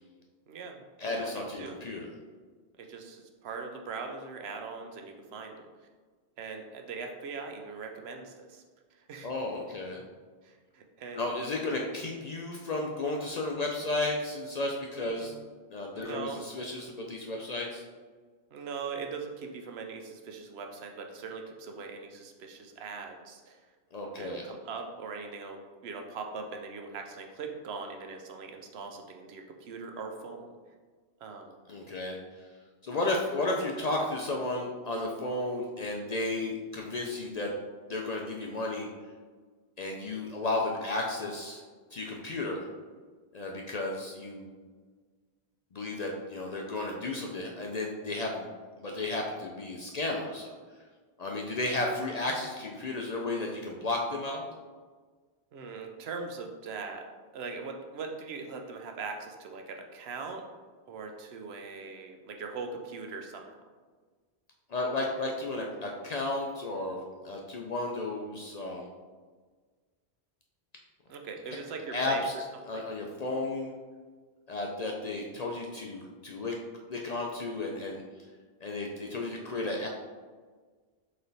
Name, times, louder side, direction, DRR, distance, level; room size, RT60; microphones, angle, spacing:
voice 1, 0.5-1.8 2.8-5.7 6.4-8.6 8.9-9.3 10.4-11.2 14.9-15.4 15.9-16.4 18.5-23.6 24.2-30.5 31.2-31.6 55.5-57.1 57.3-60.5 60.9-63.6 71.1-72.2 72.7-72.8, right 4 dB, 75° right, 3 dB, 0.9 m, -41 dB
voice 2, 1.0-2.1 9.2-10.0 11.1-15.3 15.7-17.8 23.9-24.5 31.7-32.2 32.8-37.5 37.9-38.9 39.8-41.6 41.9-42.7 43.3-44.5 45.7-48.5 48.8-50.5 51.2-54.4 64.7-68.9 71.9-72.3 72.7-73.7 74.5-76.5 76.9-78.0 78.6-79.9, left 2 dB, 55° left, 0 dB, 0.5 m, -33 dB
4.1 x 3.2 x 3.9 m, 1.5 s
omnidirectional pair, 1.1 m